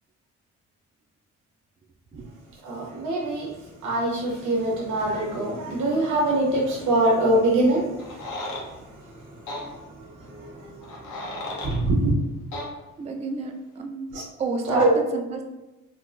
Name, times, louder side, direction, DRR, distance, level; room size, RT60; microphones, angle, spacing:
voice 1, 2.6-3.5 3.8-12.1 14.1-14.2 14.7-14.9, right 1 dB, 80° right, -4 dB, 1.0 m, -25 dB
sound 1, 8.0-8.7 9.5-9.6 10.8-11.8 12.5-12.7, left 1 dB, 80° left, 0.8 m, -34 dB
voice 2, 13.0-15.4, right 3 dB, 25° right, 3 dB, 0.3 m, -31 dB
3.7 x 2.1 x 2.5 m, 1.0 s
cardioid pair, 90°, 30 cm